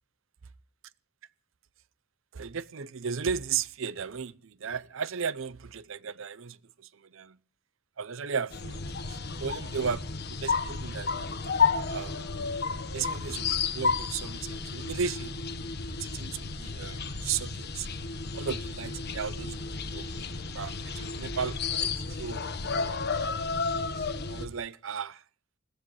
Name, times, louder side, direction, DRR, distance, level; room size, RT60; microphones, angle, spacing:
voice 1, 2.3-7.4 8.0-8.8 9.1-11.1 11.8-12.4 12.9-15.3 15.9-17.9 18.3-20.1 20.5-22.4 23.9-25.2, right 6 dB, 65° right, 0.6 m, -35 dB
sound 1, 8.5-24.5, left 4 dB, 50° left, 1.4 m, -32 dB
21.0 x 16.5 x 3.2 m
head